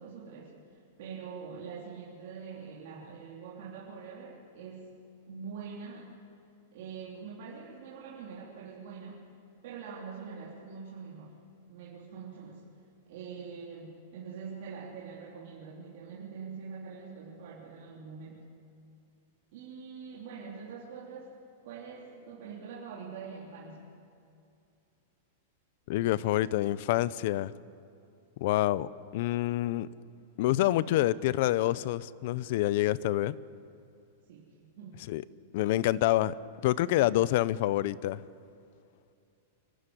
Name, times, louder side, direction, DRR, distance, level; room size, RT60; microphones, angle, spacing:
voice 1, 0.0-4.9 5.3-6.1 6.7-9.2 9.6-11.4 11.7-12.6 13.1-18.5 19.5-21.3 21.6-23.9 34.3-35.0, right 5 dB, 55° right, 3.3 m, -44 dB
voice 2, 25.9-27.5 28.4-29.9 30.4-33.4 35.1-35.2 35.5-36.3 36.6-38.2, left 15 dB, 50° left, 0.6 m, -27 dB
24.5 x 14.5 x 9.9 m
supercardioid pair, 165°, 0 cm